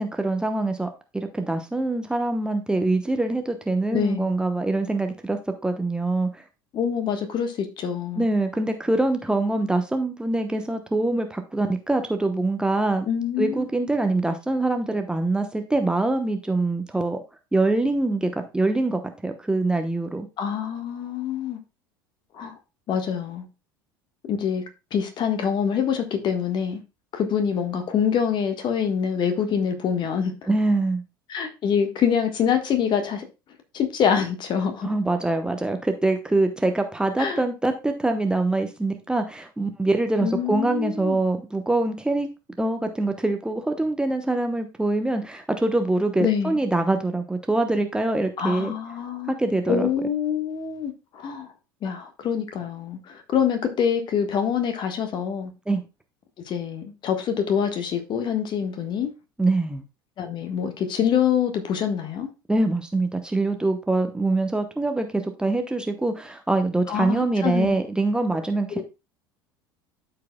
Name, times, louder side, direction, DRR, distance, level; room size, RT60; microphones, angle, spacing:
voice 1, 0.0-6.4 8.2-13.1 13.4-17.2 17.5-20.3 30.5-31.0 34.8-42.3 42.6-48.7 49.3-49.9 55.7-55.8 59.4-59.8 62.5-68.8, right 2 dB, 5° right, 0.9 m, -24 dB
voice 2, 3.9-4.3 6.7-8.3 13.1-13.7 20.4-21.6 22.3-22.5 22.9-23.4 24.3-24.6 24.9-26.8 27.1-30.3 31.3-33.2 33.7-34.9 37.2-37.4 40.2-41.2 46.2-46.6 48.4-49.4 49.7-51.5 51.8-55.5 56.5-59.1 60.2-62.3 66.9-67.7 68.7-68.8, left 7 dB, 40° left, 1.4 m, -25 dB
12.5 x 4.8 x 2.2 m
figure-of-eight pair, 70°, 12 cm